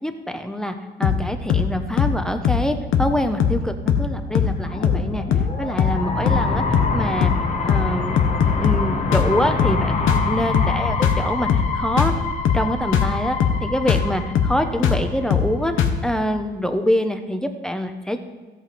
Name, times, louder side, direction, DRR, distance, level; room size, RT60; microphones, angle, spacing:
voice 1, 0.0-5.2 5.6-7.3 7.6-8.2 8.6-11.5 11.7-12.1 12.5-18.2, equal, 5° left, 7 dB, 1.0 m, -25 dB
sound 1, 1.0-1.2 1.5-1.7 2.0-2.2 2.5-2.7 2.9-3.1 3.4-3.6 3.9-4.1 4.4-4.6 4.8-5.1 5.3-5.5 5.8-6.0 6.3-6.5 6.7-7.0 7.2-7.4 7.7-7.9 8.2-8.9 9.1-9.3 9.6-9.8 10.1-10.3 10.5-10.8 11.0-11.2 11.5-11.7 12.0-12.2 12.5-12.7 12.9-13.1 13.4-13.6 13.9-14.1 14.4-14.6 14.8-15.0 15.3-15.5 15.8-16.0, left 7 dB, 80° left, 1.0 m, -20 dB
sound 2, 4.3-15.2, left 3 dB, 35° left, 1.4 m, -26 dB
13.5 x 8.3 x 4.2 m, 1.2 s
cardioid pair, 90°, 20 cm